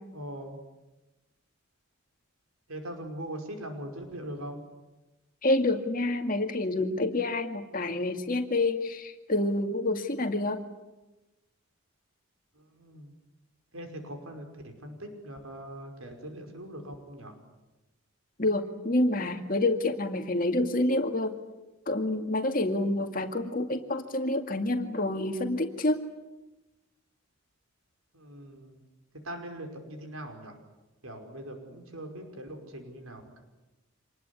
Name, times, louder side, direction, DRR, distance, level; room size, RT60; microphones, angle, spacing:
voice 1, 0.1-0.6 2.7-4.6 12.5-13.1 13.7-17.3 28.1-28.8 29.2-30.6 31.0-33.4, right 1 dB, 85° right, 5 dB, 5.5 m, -41 dB
voice 2, 5.4-10.6 18.4-21.4 21.9-26.0, left 2 dB, 40° left, 6 dB, 2.2 m, -28 dB
26.5 x 20.0 x 9.8 m, 1.1 s
head